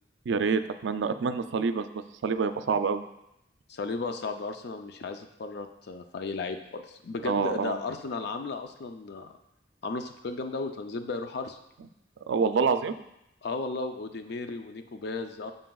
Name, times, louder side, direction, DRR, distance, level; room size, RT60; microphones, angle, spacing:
voice 1, 0.3-1.9 2.2-3.0 7.2-7.8 12.3-12.9, right 5 dB, 85° right, 11 dB, 0.4 m, -26 dB
voice 2, 3.7-9.4 9.8-11.6 13.4-15.5, left 3 dB, 65° left, 7 dB, 0.5 m, -35 dB
7.5 x 6.8 x 2.3 m, 0.84 s
head